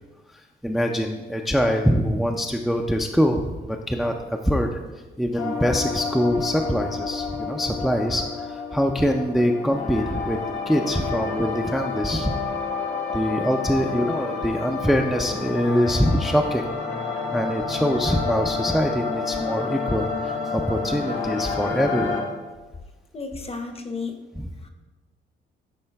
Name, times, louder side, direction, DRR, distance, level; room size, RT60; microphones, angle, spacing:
voice 1, 0.3-4.7 5.2-10.4 10.7-12.3 13.1-16.6 17.3-22.2 24.3-24.5, equal, ahead, 2 dB, 0.4 m, -24 dB
sound 1, 5.4-22.2, left 5 dB, 75° left, 1.3 m, -29 dB
voice 2, 23.1-24.2 24.6-24.7, left 4 dB, 30° left, 6 dB, 0.8 m, -32 dB
10.0 x 3.8 x 3.4 m, 1.2 s
cardioid pair, 90°, 20 cm